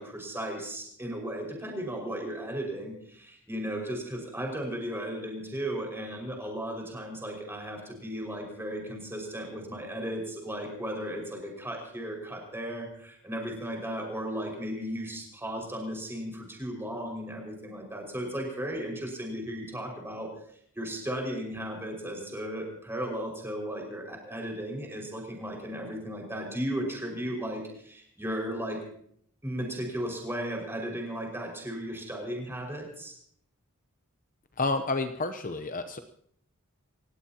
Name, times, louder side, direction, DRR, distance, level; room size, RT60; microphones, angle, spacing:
voice 1, 0.0-20.3 20.7-28.8 29.4-33.1, equal, 10° right, 0 dB, 5.4 m, -35 dB
voice 2, 34.6-36.0, left 3 dB, 35° left, 9 dB, 0.8 m, -30 dB
29.0 x 16.0 x 2.9 m, 0.66 s
head